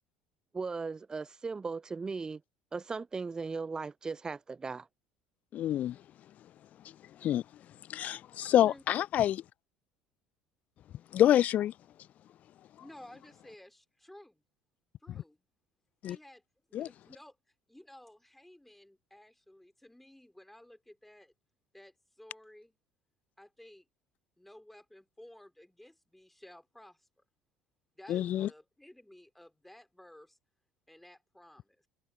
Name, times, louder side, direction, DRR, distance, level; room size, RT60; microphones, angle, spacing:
voice 1, 0.5-2.4 2.7-4.9, right 4 dB, 20° right, 0.5 m, -37 dB
voice 2, 5.5-6.0 7.2-7.4 7.9-9.4 11.1-11.7 16.0-16.2 16.7-16.9 28.1-28.5, left 12 dB, 45° left, 0.4 m, -27 dB
voice 3, 12.8-14.4 15.0-15.5 16.1-16.4 16.7-21.3 21.7-22.8 23.4-23.9 24.4-27.1 27.9-30.4 30.9-31.8, left 1 dB, 5° left, 4.6 m, -55 dB
figure-of-eight pair, 60°, 4 cm